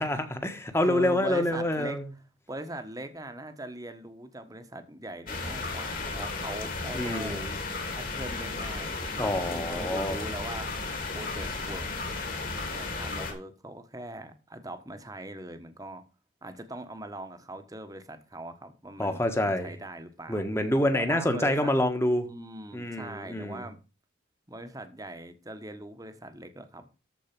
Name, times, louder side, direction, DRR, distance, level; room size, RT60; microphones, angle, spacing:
voice 1, 0.0-2.0 6.9-7.6 9.2-10.2 19.0-19.7 20.3-22.3 22.7-23.6, left 1 dB, 15° left, 1.5 m, -27 dB
voice 2, 0.8-2.0 2.5-7.4 8.0-10.7 11.1-11.9 12.6-16.0 16.4-20.5 20.9-21.7 22.3-23.8 24.5-26.9, right 1 dB, 20° right, 1.3 m, -41 dB
sound 1, 5.3-13.3, left 3 dB, 45° left, 2.9 m, -34 dB
14.0 x 4.7 x 6.1 m
head